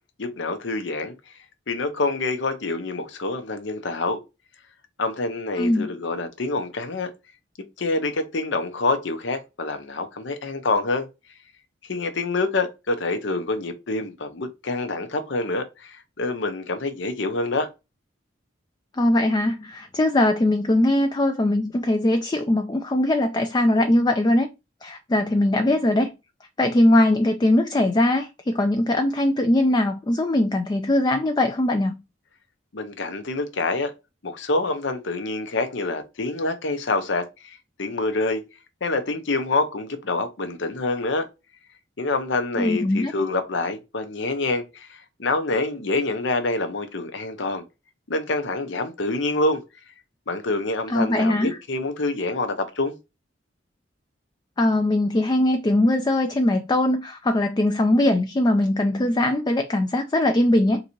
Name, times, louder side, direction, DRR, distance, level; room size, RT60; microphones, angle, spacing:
voice 1, 0.2-1.4 1.7-4.2 5.0-7.1 7.8-11.1 11.8-17.7 32.7-33.9 34.2-38.4 38.8-41.3 42.0-47.6 48.1-49.6 50.3-52.9, left 2 dB, 70° left, 0.8 m, -26 dB
voice 2, 5.6-5.9 19.0-24.5 24.8-26.1 26.6-32.0 42.6-43.1 50.9-51.6 54.6-60.8, left 1 dB, 20° left, 0.4 m, -21 dB
3.9 x 2.7 x 4.4 m
head